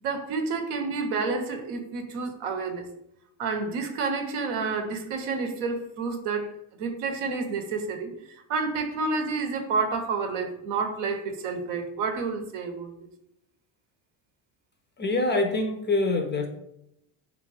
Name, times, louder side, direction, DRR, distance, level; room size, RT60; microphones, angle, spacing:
voice 1, 0.0-2.9 3.4-12.9, right 4 dB, 80° right, 6 dB, 0.8 m, -29 dB
voice 2, 15.0-16.5, left 2 dB, 25° left, 4 dB, 0.3 m, -25 dB
3.4 x 2.3 x 3.2 m, 0.78 s
supercardioid pair, 90°, 47 cm